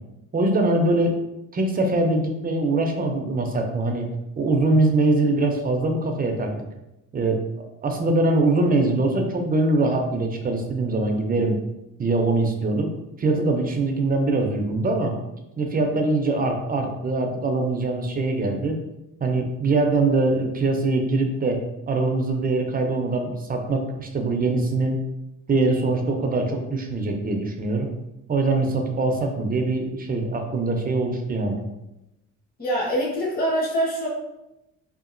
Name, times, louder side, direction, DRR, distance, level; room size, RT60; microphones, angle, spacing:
voice 1, 0.3-1.2 1.5-4.1 4.4-6.5 7.1-7.4 7.8-11.6 12.0-12.9 13.2-15.1 15.6-18.8 19.2-21.6 21.9-25.0 25.5-27.9 28.3-31.6, right 2 dB, 30° right, 3 dB, 0.5 m, -23 dB
voice 2, 32.6-34.1, equal, 30° left, -5 dB, 1.1 m, -24 dB
2.8 x 2.4 x 2.5 m, 0.91 s
cardioid pair, 90°, 30 cm